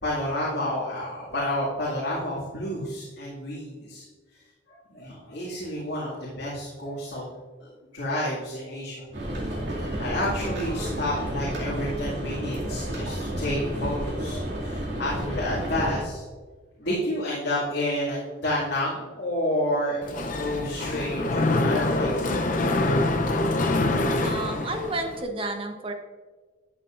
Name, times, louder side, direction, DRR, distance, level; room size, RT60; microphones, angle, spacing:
voice 1, 0.0-4.0 4.3-4.4 4.7-7.4 7.9-9.1 9.5-16.2 16.8-22.3, left 1 dB, 70° left, -8 dB, 2.2 m, -30 dB
sound 1, 9.1-16.0, right 1 dB, 65° right, 2.4 m, -31 dB
Mechanisms, 20.0-25.2, left 2 dB, 45° left, 0.6 m, -25 dB
voice 2, 24.2-25.9, right 2 dB, 30° right, 4 dB, 0.9 m, -31 dB
11.5 x 7.5 x 2.5 m, 1.4 s
head